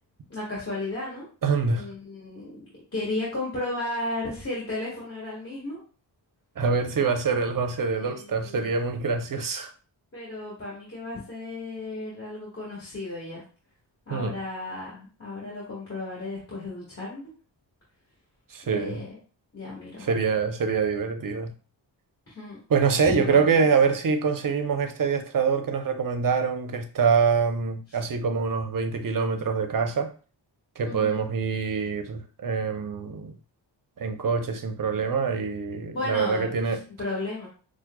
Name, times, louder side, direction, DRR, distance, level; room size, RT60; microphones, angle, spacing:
voice 1, 0.3-1.3 1.7-5.8 7.9-8.6 10.1-13.4 14.1-17.3 18.6-19.1 19.5-20.1 22.3-22.6 23.0-23.5 27.9-28.0 30.8-31.2 35.9-37.5, left 2 dB, 30° left, 1.6 m, -34 dB
voice 2, 1.4-1.9 6.6-9.7 14.1-14.4 18.5-19.0 20.0-21.5 22.7-30.1 30.8-33.3 34.0-36.8, right 5 dB, 45° right, 0.7 m, -25 dB
5.9 x 2.1 x 2.2 m
cardioid pair, 65°, 45 cm